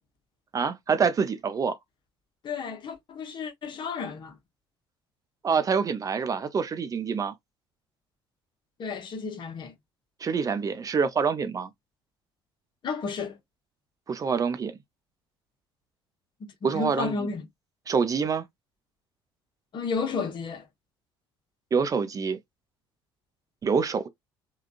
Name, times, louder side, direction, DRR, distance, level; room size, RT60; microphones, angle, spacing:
voice 1, 0.5-1.8 5.4-7.3 10.2-11.7 14.1-14.7 16.6-17.3 17.9-18.5 21.7-22.4 23.6-24.1, right 5 dB, 30° right, 0.5 m, -26 dB
voice 2, 2.4-4.3 8.8-9.7 12.8-13.4 16.4-17.4 19.7-20.6, left 5 dB, 40° left, 0.9 m, -32 dB
3.5 x 2.3 x 2.4 m
figure-of-eight pair, 55°, 12 cm